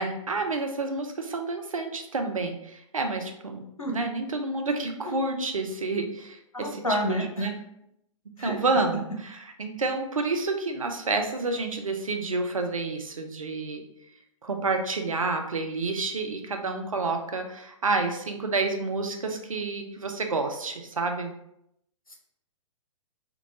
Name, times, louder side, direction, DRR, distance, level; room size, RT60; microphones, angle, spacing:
voice 1, 0.0-6.7 7.1-7.6 8.4-13.8 14.4-21.3, right 3 dB, 80° right, 5 dB, 0.6 m, -29 dB
voice 2, 6.5-7.5 8.4-8.6 22.1-22.2, equal, 85° left, 0 dB, 0.8 m, -29 dB
3.7 x 2.3 x 2.9 m, 0.78 s
figure-of-eight pair, 115°, 17 cm